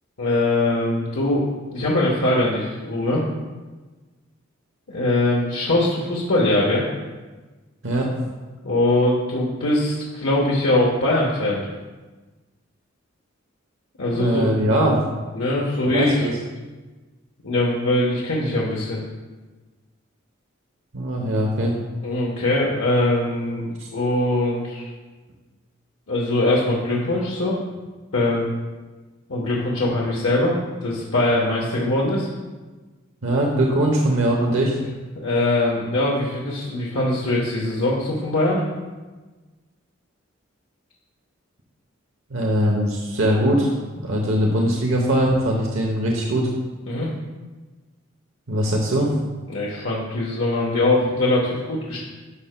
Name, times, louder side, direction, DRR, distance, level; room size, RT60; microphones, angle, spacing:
voice 1, 0.2-3.2 4.9-6.8 8.6-11.6 14.0-14.6 15.3-16.3 17.4-19.0 22.0-24.9 26.1-27.6 28.1-28.5 29.3-32.3 35.1-38.6 46.9-47.1 49.5-52.0, left 1 dB, 85° left, -4 dB, 1.1 m, -22 dB
voice 2, 7.8-8.1 14.2-15.0 15.9-16.4 20.9-21.7 23.8-23.9 33.2-34.8 42.3-46.5 48.5-49.1, right 1 dB, 75° right, 0 dB, 0.8 m, -21 dB
11.0 x 6.5 x 2.2 m, 1.3 s
head